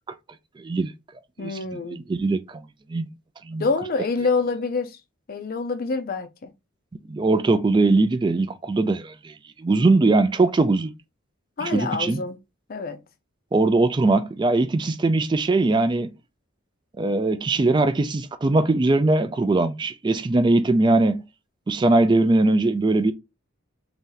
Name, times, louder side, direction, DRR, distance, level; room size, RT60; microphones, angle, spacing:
voice 1, 0.6-0.9 1.4-1.6 1.9-2.6 2.9-3.1 3.5-3.7 7.1-10.9 11.6-12.2 13.5-16.1 17.0-21.2 21.7-23.1, right 2 dB, 20° right, 0.3 m, -21 dB
voice 2, 1.4-2.0 3.6-5.0 5.3-6.5 11.6-12.4 12.7-13.0, left 4 dB, 45° left, 0.5 m, -26 dB
3.1 x 2.8 x 3.8 m
head